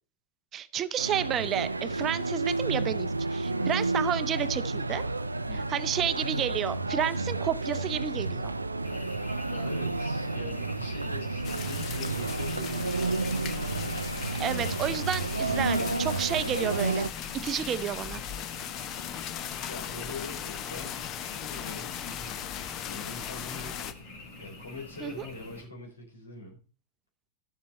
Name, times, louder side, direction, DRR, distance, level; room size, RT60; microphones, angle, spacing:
voice 1, 0.5-5.0 5.7-8.5 14.4-17.1 17.3-18.2 25.0-25.2, right 9 dB, 30° right, 14 dB, 0.7 m, -31 dB
sound 1, 1.0-17.1, right 3 dB, 80° right, 0.5 m, -31 dB
voice 2, 5.5-5.8 9.4-13.9 14.4-15.1 15.4-15.7 19.5-22.5 22.8-23.9 24.4-26.6, left 2 dB, 75° left, 2 dB, 4.0 m, -43 dB
Frog, 8.8-25.6, left 2 dB, 55° left, 5.1 m, -46 dB
sound 2, 11.4-23.9, left 10 dB, 35° left, 1.0 m, -38 dB
11.5 x 7.5 x 4.3 m, 0.37 s
figure-of-eight pair, 90°, 0 cm